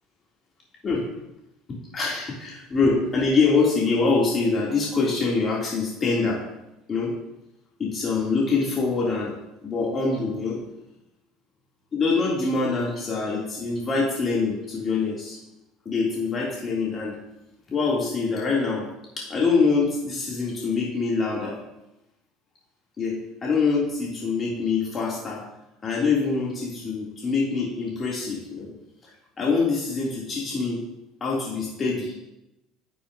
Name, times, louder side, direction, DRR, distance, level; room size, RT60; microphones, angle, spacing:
voice 1, 1.9-6.4 6.9-7.1 7.8-9.3 9.6-10.6 11.9-15.4 15.9-17.1 17.7-18.9 19.2-21.6 23.0-23.2 23.4-25.4 25.8-28.7 29.0-30.8 31.2-32.1, left 4 dB, 35° left, -4 dB, 2.3 m, -24 dB
11.0 x 9.1 x 2.6 m, 0.93 s
hypercardioid pair, 65°, 0 cm